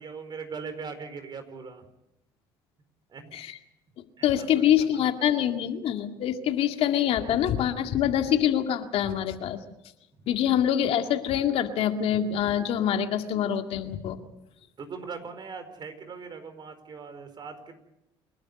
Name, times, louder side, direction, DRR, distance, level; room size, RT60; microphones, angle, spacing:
voice 1, 0.0-1.9 3.1-3.3 4.2-4.5 4.9-5.5 10.2-10.3 14.8-17.7, right 5 dB, 40° right, 9 dB, 4.5 m, -40 dB
voice 2, 4.2-9.6 10.3-14.2, left 10 dB, 65° left, 6 dB, 2.1 m, -25 dB
27.5 x 12.0 x 9.6 m, 0.86 s
supercardioid pair, 80°, 11 cm